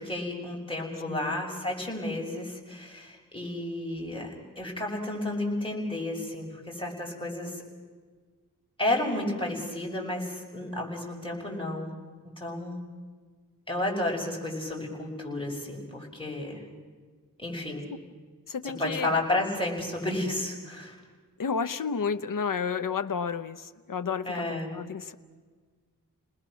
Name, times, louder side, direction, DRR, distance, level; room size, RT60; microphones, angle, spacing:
voice 1, 0.0-7.6 8.8-12.0 12.2-12.8 13.7-16.6 17.4-17.9 18.6-20.9 24.3-24.7, left 1 dB, 15° left, -2 dB, 5.8 m, -32 dB
voice 2, 18.5-19.1 21.4-25.1, left 6 dB, 70° left, 8 dB, 0.8 m, -31 dB
30.0 x 19.5 x 6.2 m, 1.5 s
wide cardioid pair, 65°, 34 cm